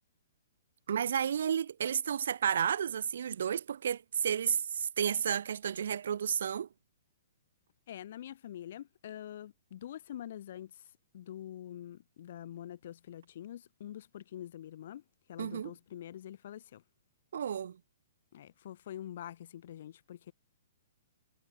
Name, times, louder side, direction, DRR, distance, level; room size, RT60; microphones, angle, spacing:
voice 1, 0.9-6.7 15.4-15.7 17.3-17.8, right 8 dB, 60° right, 0.8 m, -32 dB
voice 2, 7.9-15.0 15.3-16.8 18.3-20.3, left 11 dB, 50° left, 2.9 m, -45 dB
figure-of-eight pair, 120°, 0 cm